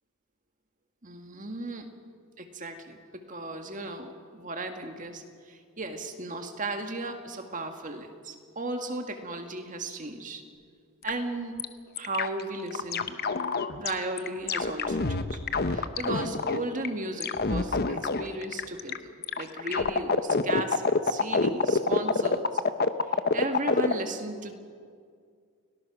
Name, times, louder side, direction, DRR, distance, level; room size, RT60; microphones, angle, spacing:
voice 1, 1.0-1.9 2.4-10.4 11.0-11.6 12.0-13.2 13.8-15.4 15.6-22.6 23.1-24.5, right 2 dB, 35° right, 5 dB, 1.9 m, -35 dB
sound 1, 11.1-11.2 11.6-11.7 12.0-13.9 14.2-16.9 17.2-19.0 19.2-23.9, left 4 dB, 45° left, 0.9 m, -26 dB
30.0 x 18.5 x 6.3 m, 2.1 s
head